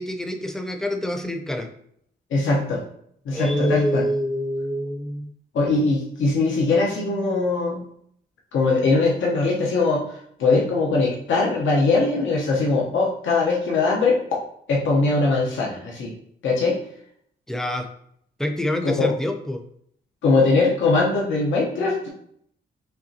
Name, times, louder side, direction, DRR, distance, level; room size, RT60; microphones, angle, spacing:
voice 1, 0.0-1.7 3.3-5.3 17.5-17.9 18.4-19.6, equal, ahead, 4 dB, 0.4 m, -26 dB
voice 2, 2.3-2.8 3.2-4.0 5.5-7.9 8.5-14.2 14.7-16.1 16.4-16.8 18.8-19.1 20.2-22.1, left 3 dB, 90° left, -3 dB, 0.9 m, -21 dB
5.5 x 3.0 x 2.8 m, 0.68 s
wide cardioid pair, 155°, 20 cm